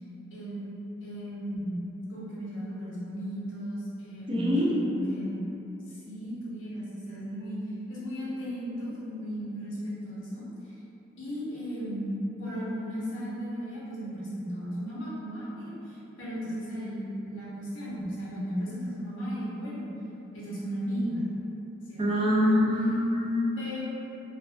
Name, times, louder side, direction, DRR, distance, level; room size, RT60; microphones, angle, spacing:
voice 1, 0.3-0.7 1.0-1.8 2.1-5.4 5.9-7.6 7.9-10.4 11.2-19.9 20.3-21.3 21.9-22.4 23.6-23.8, equal, 85° left, -9 dB, 0.8 m, -35 dB
voice 2, 4.3-4.7 22.0-23.6, left 1 dB, 25° right, -6 dB, 0.3 m, -24 dB
2.4 x 2.3 x 2.5 m, 2.9 s
head